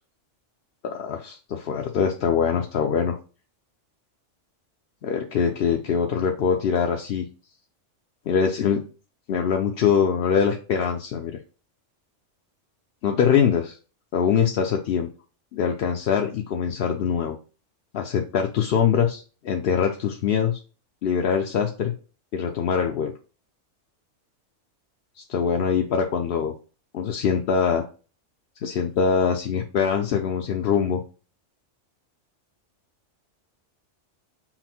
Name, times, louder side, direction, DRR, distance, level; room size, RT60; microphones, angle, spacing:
voice 1, 0.8-3.2 5.0-7.2 8.3-8.8 9.3-11.4 13.0-13.8 14.1-15.1 15.5-17.4 17.9-20.6 21.0-21.9 22.3-23.1 25.3-26.5 26.9-27.9 28.6-31.0, left 7 dB, 65° left, 2 dB, 0.7 m, -23 dB
5.8 x 2.1 x 4.2 m, 0.36 s
omnidirectional pair, 1.2 m